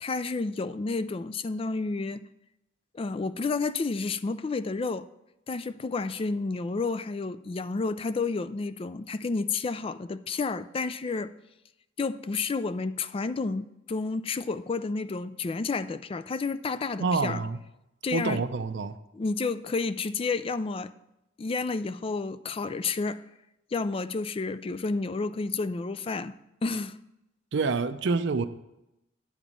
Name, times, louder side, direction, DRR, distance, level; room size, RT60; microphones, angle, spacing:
voice 1, 0.0-2.2 2.9-5.1 5.5-11.3 12.0-17.4 18.0-18.4 19.1-20.9 21.4-23.2 23.7-26.3 26.6-27.0, left 4 dB, 30° left, 0.3 m, -30 dB
voice 2, 17.0-17.6 18.1-19.0 27.5-28.4, right 4 dB, 70° right, 0.5 m, -27 dB
10.5 x 4.0 x 7.3 m
head